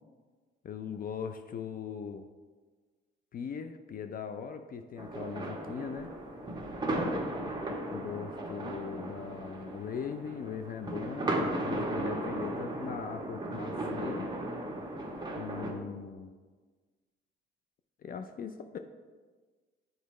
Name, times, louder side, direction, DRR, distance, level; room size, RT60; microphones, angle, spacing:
voice 1, 0.6-2.2 3.3-6.1 7.9-11.4 11.6-14.3 15.4-16.3 18.0-18.8, left 6 dB, 45° left, 8 dB, 0.4 m, -40 dB
sound 1, 5.0-15.7, right 1 dB, 20° right, 1.1 m, -36 dB
8.1 x 4.5 x 3.1 m, 1.4 s
cardioid pair, 90°, 20 cm